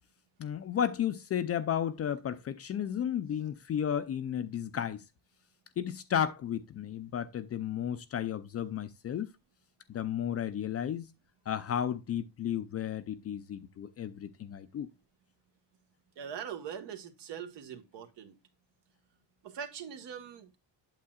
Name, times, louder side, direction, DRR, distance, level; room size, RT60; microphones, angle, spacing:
voice 1, 0.4-5.0 5.8-9.3 9.9-11.1 11.5-14.9, left 9 dB, 35° left, 0.4 m, -33 dB
voice 2, 16.2-18.3 19.4-20.6, right 8 dB, 65° right, 1.4 m, -42 dB
8.5 x 7.5 x 2.3 m
cardioid pair, 140°, 45 cm